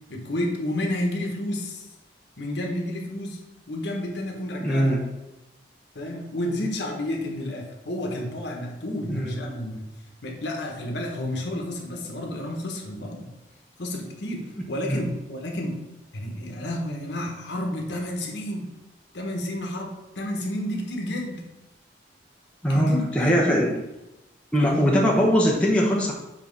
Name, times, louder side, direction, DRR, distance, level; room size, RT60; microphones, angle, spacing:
voice 1, 0.1-1.9 2.4-3.4 3.7-5.0 5.9-9.9 10.2-13.3 13.8-15.8 16.1-18.7 19.1-21.4 22.7-23.6 24.6-24.8, left 1 dB, 75° left, 0 dB, 1.3 m, -31 dB
voice 2, 4.6-5.0 9.1-9.4 14.9-15.0 22.6-23.7 24.5-26.1, equal, 5° left, -3 dB, 1.0 m, -21 dB
7.3 x 3.0 x 5.4 m, 0.93 s
head